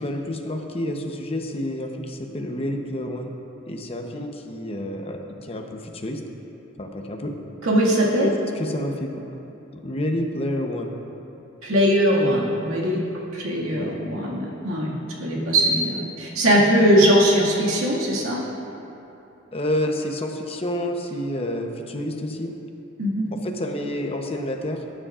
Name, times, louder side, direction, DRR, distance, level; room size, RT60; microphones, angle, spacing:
voice 1, 0.0-3.3 3.7-6.2 6.8-7.3 8.2-9.2 9.8-10.9 13.7-13.9 19.5-22.5 23.4-25.0, left 1 dB, 30° left, 3 dB, 0.8 m, -29 dB
voice 2, 7.6-8.3 11.6-13.0 13.3-14.9 15.2-18.4 23.0-23.3, equal, 90° right, -4 dB, 2.0 m, -20 dB
18.0 x 9.9 x 2.5 m, 2.9 s
head